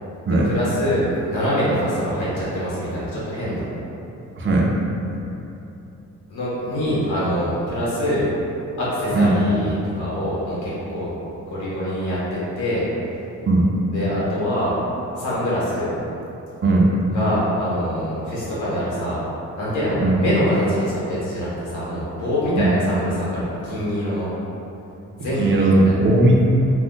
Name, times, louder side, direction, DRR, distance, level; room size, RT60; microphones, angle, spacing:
voice 1, 0.3-3.7 6.3-8.2 8.8-11.1 11.5-12.8 13.9-14.7 15.1-15.9 17.1-19.2 19.6-24.3 25.2-26.0, equal, 80° left, -9 dB, 1.1 m, -24 dB
voice 2, 4.4-4.7 9.1-9.4 13.5-13.7 16.6-17.0 20.0-20.1 22.6-22.7 25.4-26.4, right 2 dB, 40° right, -2 dB, 0.5 m, -17 dB
2.5 x 2.1 x 3.8 m, 2.9 s
cardioid pair, 90°, 30 cm